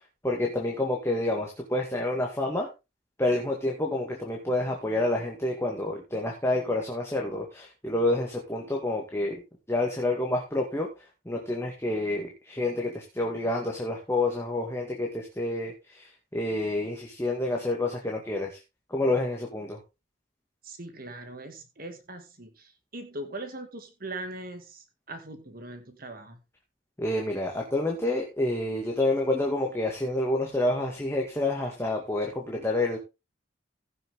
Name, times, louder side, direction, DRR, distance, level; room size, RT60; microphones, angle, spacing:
voice 1, 0.2-2.7 3.2-9.4 9.7-10.9 11.3-18.6 18.9-19.8 27.0-33.0, left 2 dB, 15° left, 0 dB, 2.0 m, -28 dB
voice 2, 20.6-26.4, right 2 dB, 45° right, 7 dB, 2.2 m, -41 dB
16.0 x 6.8 x 3.7 m, 0.26 s
head